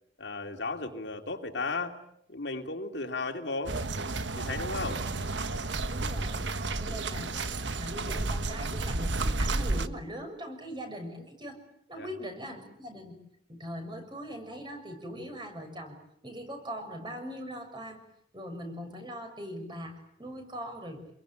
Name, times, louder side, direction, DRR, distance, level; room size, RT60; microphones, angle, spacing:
voice 1, 0.2-1.9 2.3-3.8 4.3-5.0 6.9-7.0 11.9-12.1, left 3 dB, 70° left, 5 dB, 2.8 m, -35 dB
sound 1, 3.6-9.9, right 2 dB, 75° right, 1.4 m, -31 dB
voice 2, 5.9-6.4 6.8-11.6 11.9-13.2 13.5-18.0 18.3-21.0, equal, 25° right, 6 dB, 6.6 m, -41 dB
27.5 x 22.5 x 9.0 m, 0.76 s
head